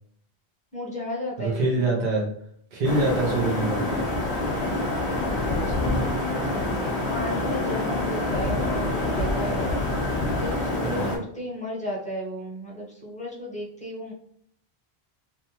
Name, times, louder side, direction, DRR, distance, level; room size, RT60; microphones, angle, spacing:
voice 1, 0.7-2.1 5.5-6.3 7.1-9.8 10.3-14.1, left 1 dB, 10° left, -5 dB, 0.7 m, -34 dB
voice 2, 1.4-2.3 2.7-4.0 10.8-11.2, right 2 dB, 55° right, -3 dB, 0.6 m, -25 dB
sound 1, 2.8-11.2, left 2 dB, 40° left, 0.8 m, -26 dB
2.6 x 2.1 x 2.8 m, 0.64 s
omnidirectional pair, 1.0 m